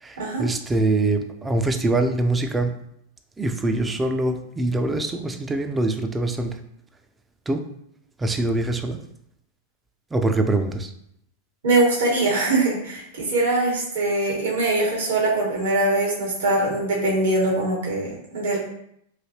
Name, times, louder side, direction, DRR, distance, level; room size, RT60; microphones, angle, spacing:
voice 1, 0.0-2.7 3.4-6.6 7.5-7.7 8.2-9.0 10.1-10.9, right 2 dB, 10° right, 6 dB, 0.4 m, -24 dB
voice 2, 11.6-18.6, right 2 dB, 75° right, -3 dB, 1.4 m, -22 dB
3.2 x 2.7 x 2.8 m, 0.73 s
hypercardioid pair, 115°, 0 cm